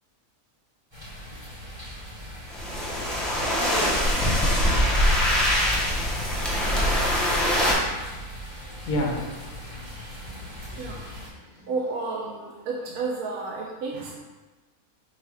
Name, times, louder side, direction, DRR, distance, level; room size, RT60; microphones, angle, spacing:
sound 1, 0.9-11.3, equal, 20° right, 0.9 m, -40 dB
sound 2, 2.5-7.7, equal, ahead, 0.5 m, -23 dB
voice 1, 8.8-11.0 11.3-11.7, left 1 dB, 70° left, 0 dB, 1.2 m, -33 dB
voice 2, 11.7-14.1, right 3 dB, 85° right, -2 dB, 1.1 m, -31 dB
4.7 x 2.4 x 4.6 m, 1.2 s
omnidirectional pair, 1.6 m